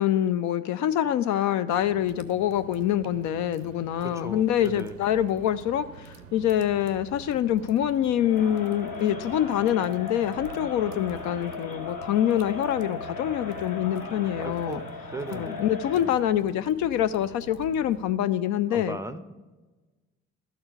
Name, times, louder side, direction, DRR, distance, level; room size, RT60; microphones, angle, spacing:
voice 1, 0.0-14.8 15.3-19.0, left 11 dB, 50° left, 12 dB, 0.4 m, -25 dB
sound 1, 1.7-18.1, right 5 dB, 85° right, 0.6 m, -47 dB
voice 2, 4.0-5.0 14.4-16.1 18.7-19.3, right 1 dB, 10° right, 10 dB, 0.5 m, -38 dB
Crowd, 8.2-16.2, left 4 dB, 65° left, 1.7 m, -38 dB
12.0 x 4.4 x 4.9 m, 1.2 s
figure-of-eight pair, 45°, 38 cm